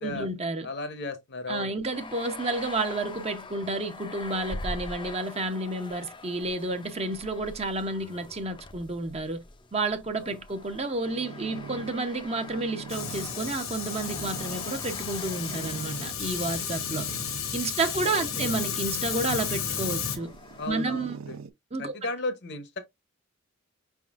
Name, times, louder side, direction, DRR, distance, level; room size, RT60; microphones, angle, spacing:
voice 1, 0.0-0.7 1.5-9.4 9.7-17.1 17.5-20.3 20.7-21.2 21.7-22.0, right 2 dB, 30° right, 0.7 m, -31 dB
voice 2, 0.6-1.7 10.2-10.4 17.8-18.3 20.6-21.4 21.8-22.8, left 2 dB, 55° left, 0.8 m, -35 dB
sound 1, 1.9-20.7, left 3 dB, 25° left, 0.5 m, -44 dB
sound 2, 11.0-21.5, right 5 dB, 70° right, 0.5 m, -44 dB
Fire, 12.9-20.2, left 7 dB, 75° left, 1.1 m, -33 dB
5.3 x 3.6 x 2.4 m
head